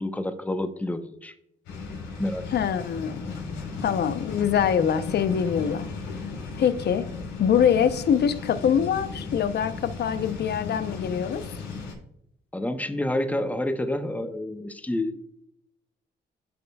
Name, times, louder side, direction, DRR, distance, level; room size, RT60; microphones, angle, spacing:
voice 1, 0.0-1.3 2.2-2.5 3.7-3.8 12.5-15.2, left 1 dB, 10° left, 8 dB, 0.8 m, -29 dB
sound 1, 1.6-11.9, left 4 dB, 85° left, 3.1 m, -36 dB
voice 2, 2.5-3.4 3.8-5.9 6.6-7.1 7.4-11.4, left 8 dB, 60° left, 12 dB, 0.7 m, -24 dB
12.5 x 5.2 x 2.3 m, 0.77 s
cardioid pair, 75°, 19 cm